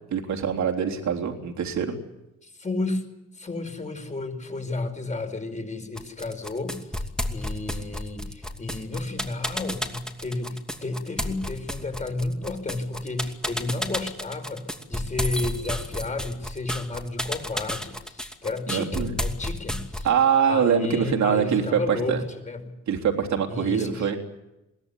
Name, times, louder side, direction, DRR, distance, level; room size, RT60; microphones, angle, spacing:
voice 1, 0.1-2.0 18.7-19.2 20.0-22.2 22.9-24.2, right 7 dB, 65° right, 4 dB, 3.6 m, -24 dB
voice 2, 2.4-3.1 3.3-20.1 20.5-22.7 23.5-24.1, left 2 dB, 25° left, 6 dB, 5.1 m, -32 dB
sound 1, 6.0-20.2, left 1 dB, ahead, 2.7 m, -31 dB
22.0 x 17.5 x 9.9 m, 0.93 s
cardioid pair, 90°, 30 cm